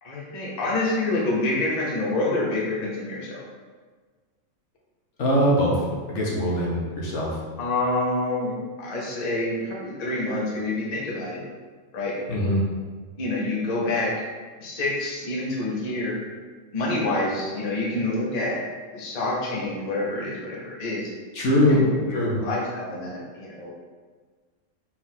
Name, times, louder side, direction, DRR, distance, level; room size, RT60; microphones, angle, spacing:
voice 1, 0.0-3.4 7.6-11.4 11.9-12.1 13.2-14.1 14.6-16.2 16.7-18.6 18.9-21.1 21.7-23.7, left 2 dB, 40° left, -4 dB, 0.7 m, -27 dB
voice 2, 5.2-7.4 12.3-12.7 21.3-22.4, equal, 65° left, -4 dB, 1.2 m, -22 dB
4.3 x 2.4 x 4.1 m, 1.4 s
omnidirectional pair, 1.4 m